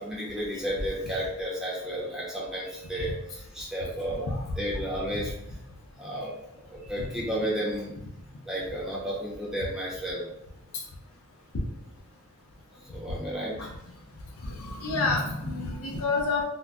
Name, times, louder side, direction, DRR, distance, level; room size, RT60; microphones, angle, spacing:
voice 1, 0.0-5.3 6.0-6.3 6.7-7.9 8.5-10.2 12.9-13.5, equal, ahead, -7 dB, 0.7 m, -32 dB
voice 2, 14.4-16.4, left 3 dB, 85° left, 0 dB, 0.6 m, -28 dB
3.8 x 2.1 x 2.4 m, 0.83 s
head